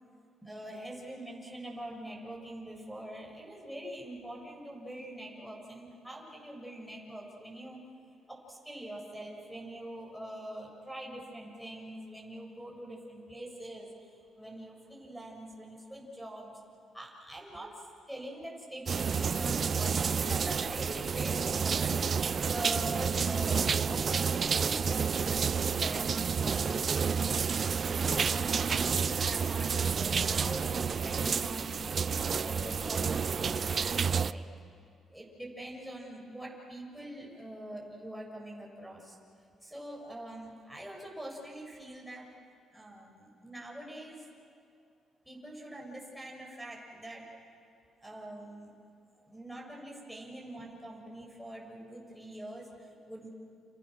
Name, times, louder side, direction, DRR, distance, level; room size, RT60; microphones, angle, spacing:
voice 1, 0.4-7.8 8.3-13.9 14.4-16.6 16.9-27.0 27.8-31.8 32.2-34.5 35.1-39.2 39.6-42.3 42.7-44.3 45.3-47.3 48.0-48.7 49.2-53.3, right 1 dB, ahead, -2 dB, 7.0 m, -44 dB
sound 1, 18.9-34.3, right 6 dB, 45° right, 0.6 m, -30 dB
29.5 x 29.5 x 6.5 m, 2.3 s
cardioid pair, 90°, 0 cm